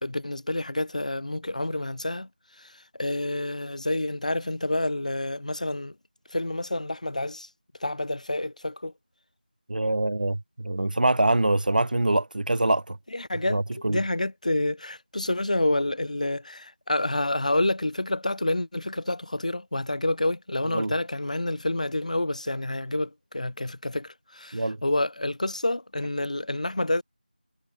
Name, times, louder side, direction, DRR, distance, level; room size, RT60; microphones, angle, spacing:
voice 1, 0.0-2.3 2.6-2.7 3.0-5.9 6.3-7.5 7.8-8.9 13.1-13.6 13.9-27.0, left 1 dB, 50° left, 0.4 m, -28 dB
voice 2, 9.7-13.0 13.5-14.0 20.7-20.9 24.5-24.8, right 2 dB, 65° right, 0.3 m, -24 dB
figure-of-eight pair, 170°, 5 cm